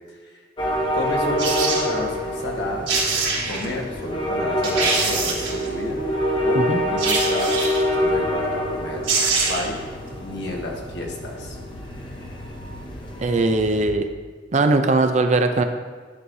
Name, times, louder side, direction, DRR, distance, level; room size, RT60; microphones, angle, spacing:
sound 1, 0.6-13.9, equal, 25° left, 1.0 m, -26 dB
voice 1, 0.9-2.9 3.4-6.0 6.4-7.6 8.0-9.1 9.5-9.8 10.2-11.6, left 1 dB, 65° left, -1 dB, 1.5 m, -30 dB
sound 2, 1.4-1.9 2.6-2.7 2.9-3.7 4.2-4.3 4.6-5.7 7.0-7.9 8.7-8.8 9.0-9.8 10.1-10.2, right 4 dB, 75° right, 2.5 m, -23 dB
voice 2, 13.2-14.1 14.5-15.6, right 2 dB, 40° right, 7 dB, 0.5 m, -19 dB
11.0 x 6.3 x 2.7 m, 1.5 s
head